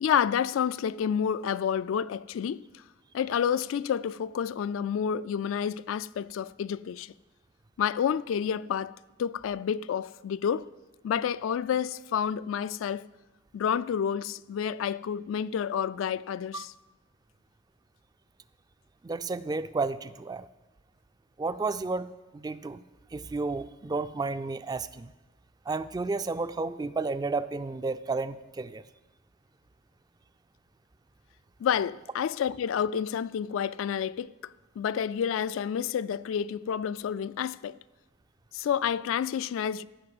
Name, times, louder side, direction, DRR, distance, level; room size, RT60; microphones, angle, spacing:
voice 1, 0.0-2.8 3.1-7.1 7.8-10.7 11.0-13.1 13.5-16.7 31.6-37.8 38.5-39.9, left 8 dB, 75° left, 0.3 m, -29 dB
voice 2, 19.0-20.5 21.4-22.8 23.1-25.1 25.7-28.8, right 3 dB, 20° right, 0.3 m, -32 dB
14.5 x 5.4 x 7.7 m
head